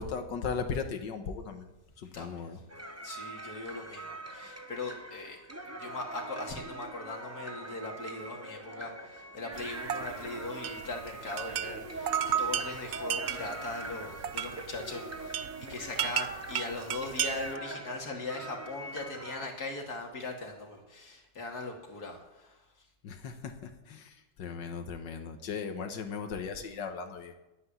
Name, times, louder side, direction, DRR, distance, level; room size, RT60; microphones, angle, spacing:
voice 1, 0.0-2.6 23.0-27.3, left 5 dB, 80° left, 6 dB, 1.9 m, -37 dB
voice 2, 2.1-2.5 3.0-5.4 5.8-22.6, left 2 dB, 60° left, 1 dB, 3.0 m, -40 dB
sound 1, 2.7-19.5, right 2 dB, 10° right, 0.9 m, -43 dB
sound 2, 9.5-17.6, right 9 dB, 65° right, 0.6 m, -35 dB
11.0 x 9.6 x 9.7 m, 0.99 s
omnidirectional pair, 1.9 m